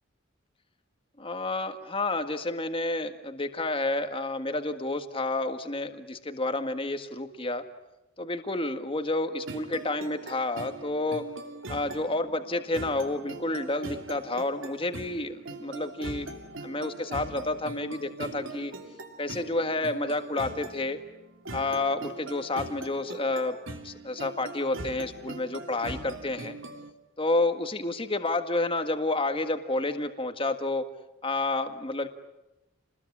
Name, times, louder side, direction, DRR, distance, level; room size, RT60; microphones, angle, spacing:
voice 1, 1.2-7.6 8.2-11.2 11.7-16.4 16.6-18.7 19.2-21.0 21.5-23.6 23.8-26.5 27.2-30.9 31.2-32.1, left 2 dB, 25° left, 7 dB, 1.8 m, -30 dB
sound 1, 9.5-26.9, right 2 dB, 80° right, 3.0 m, -41 dB
29.5 x 21.0 x 9.7 m, 0.95 s
head